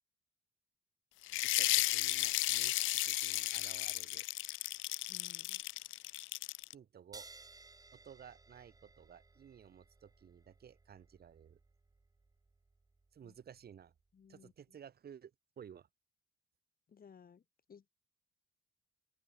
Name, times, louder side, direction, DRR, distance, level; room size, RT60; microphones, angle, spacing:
sound 1, 1.3-6.7, left 17 dB, 80° left, 0.4 m, -34 dB
voice 1, 1.6-4.3 6.7-7.3 7.9-11.6 13.1-13.9 14.3-15.9, right 8 dB, 50° right, 1.8 m, -55 dB
voice 2, 5.1-5.6 13.2-13.3 14.1-14.5 16.9-17.4 17.7-17.9, left 7 dB, 45° left, 7.3 m, -58 dB
sound 2, 7.1-14.1, right 3 dB, 20° right, 1.2 m, -60 dB
open air
cardioid pair, 90°, 20 cm